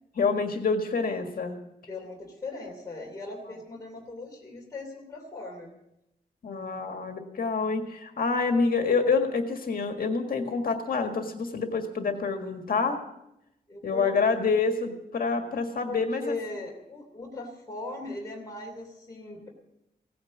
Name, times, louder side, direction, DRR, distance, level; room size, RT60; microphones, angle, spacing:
voice 1, 0.2-1.6 6.4-13.0 13.8-16.4, left 4 dB, 70° left, 5 dB, 1.7 m, -27 dB
voice 2, 1.9-5.7 13.7-14.4 15.8-19.5, left 2 dB, 20° left, -2 dB, 2.9 m, -39 dB
17.0 x 9.6 x 7.4 m, 0.85 s
wide cardioid pair, 160°, 16 cm